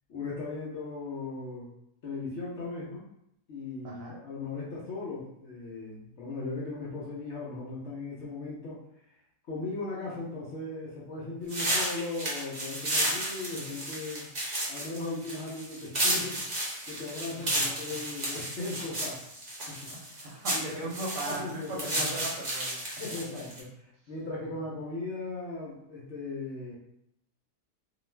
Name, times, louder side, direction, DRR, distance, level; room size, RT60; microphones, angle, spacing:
voice 1, 0.1-1.7 2.0-3.1 3.5-8.8 9.5-14.3 14.7-19.2 19.7-19.9 20.5-20.9 21.3-22.2 23.0-23.7 24.1-26.8, left 3 dB, 60° left, -6 dB, 0.8 m, -38 dB
voice 2, 3.8-4.1 17.4-17.8 19.9-22.9 24.4-24.6, right 2 dB, 65° right, -3 dB, 1.0 m, -38 dB
sound 1, 11.5-23.6, right 1 dB, 45° right, 0.6 m, -32 dB
2.4 x 2.3 x 3.1 m, 0.77 s
omnidirectional pair, 1.7 m